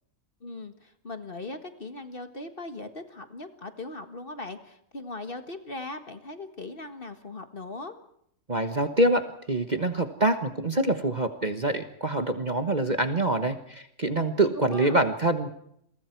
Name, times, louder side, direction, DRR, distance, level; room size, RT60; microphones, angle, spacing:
voice 1, 0.4-8.0 14.4-15.0, left 2 dB, 35° left, 8 dB, 1.8 m, -39 dB
voice 2, 8.5-15.5, right 2 dB, 30° right, 8 dB, 1.3 m, -25 dB
29.5 x 23.0 x 4.6 m, 0.73 s
omnidirectional pair, 1.7 m